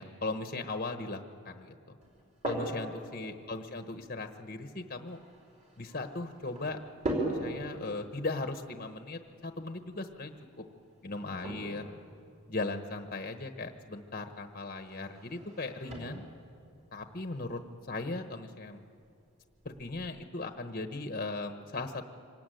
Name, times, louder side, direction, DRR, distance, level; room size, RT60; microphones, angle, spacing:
voice 1, 0.0-2.0 2.4-5.2 5.8-6.8 7.2-10.3 11.0-12.0 12.5-16.2 16.9-18.8 19.6-22.1, left 3 dB, 40° left, 7 dB, 1.1 m, -38 dB
sound 1, 2.0-20.1, right 1 dB, 30° right, 5.1 m, -43 dB
25.0 x 18.0 x 9.2 m, 2.4 s
head